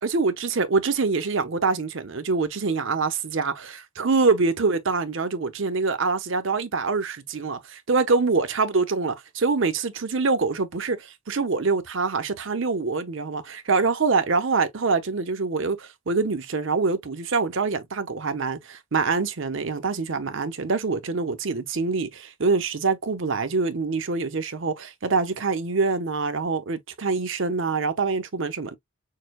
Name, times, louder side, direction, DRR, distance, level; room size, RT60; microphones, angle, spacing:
voice 1, 0.0-28.7, right 4 dB, 60° right, 0.7 m, -25 dB
6.6 x 2.2 x 2.3 m
head